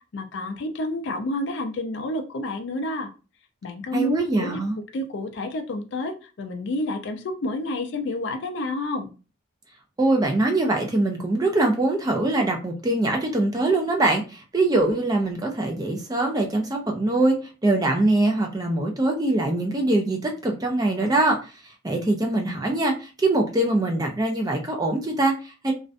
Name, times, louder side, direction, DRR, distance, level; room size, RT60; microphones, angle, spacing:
voice 1, 0.1-3.1 3.6-9.1, left 1 dB, 60° left, 6 dB, 0.4 m, -29 dB
voice 2, 3.9-4.8 10.0-17.4 17.6-21.5 21.8-25.7, right 2 dB, 20° right, 2 dB, 0.3 m, -23 dB
2.5 x 2.1 x 2.5 m, 0.33 s
head